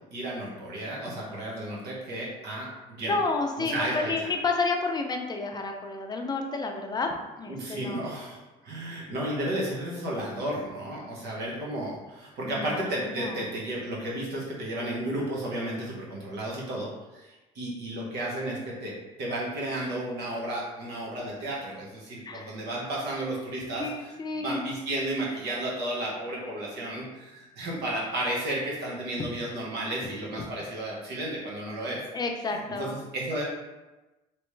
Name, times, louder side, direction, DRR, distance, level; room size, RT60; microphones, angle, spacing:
voice 1, 0.1-3.1 3.7-4.3 7.5-17.2 17.5-23.9 24.4-32.0 32.5-33.4, right 1 dB, 80° right, -4 dB, 1.2 m, -33 dB
voice 2, 3.0-8.1 12.4-13.4 22.3-22.6 23.8-24.6 29.2-29.3 32.1-33.0, left 3 dB, 25° left, 3 dB, 0.5 m, -31 dB
3.3 x 3.0 x 3.2 m, 1.1 s
cardioid pair, 110°, 17 cm